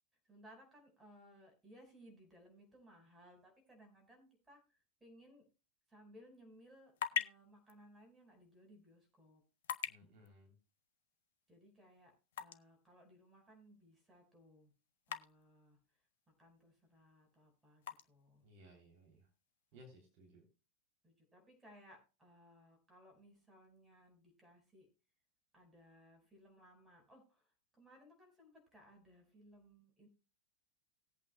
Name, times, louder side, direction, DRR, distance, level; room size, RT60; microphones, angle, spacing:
voice 1, 0.2-5.5 5.9-9.4 11.5-14.7 15.1-15.8 16.4-18.4 19.7-19.8 21.0-24.9 25.5-30.1, equal, 10° right, 2 dB, 4.7 m, -62 dB
sound 1, 6.5-20.3, left 9 dB, 55° left, 0.6 m, -49 dB
voice 2, 9.9-10.5 18.4-19.3 19.7-20.4, equal, 45° right, 1 dB, 3.0 m, -61 dB
19.0 x 8.4 x 2.2 m, 0.30 s
figure-of-eight pair, 90°, 0 cm